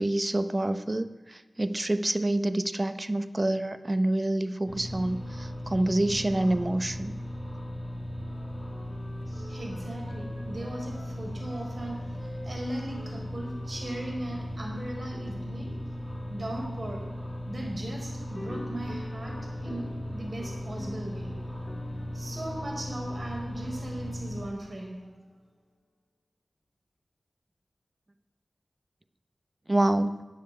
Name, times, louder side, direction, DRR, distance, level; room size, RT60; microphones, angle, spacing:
voice 1, 0.0-7.1 29.7-30.2, right 1 dB, 30° right, 12 dB, 0.8 m, -27 dB
sound 1, 4.7-24.5, equal, 5° left, 4.4 m, -37 dB
Wind instrument woodwind instrument, 8.1-14.7, equal, 65° left, 5.8 m, -51 dB
voice 2, 9.5-15.7 16.3-17.0 17.5-21.3 22.1-25.1, right 1 dB, 50° right, -1 dB, 4.8 m, -38 dB
sound 2, 18.3-23.9, left 2 dB, 40° left, 1.9 m, -46 dB
13.5 x 7.4 x 9.9 m, 1.4 s
wide cardioid pair, 65°, 0 cm